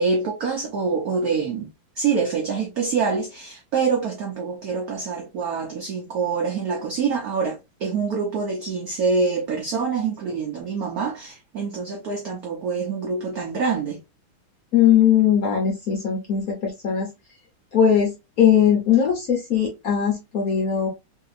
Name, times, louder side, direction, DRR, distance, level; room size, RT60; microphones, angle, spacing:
voice 1, 0.0-1.7 2.0-14.0, right 5 dB, 85° right, 0.8 m, -25 dB
voice 2, 14.7-17.1 17.7-18.1 18.4-20.9, left 8 dB, 60° left, 1.0 m, -19 dB
3.2 x 2.7 x 2.4 m
omnidirectional pair, 2.4 m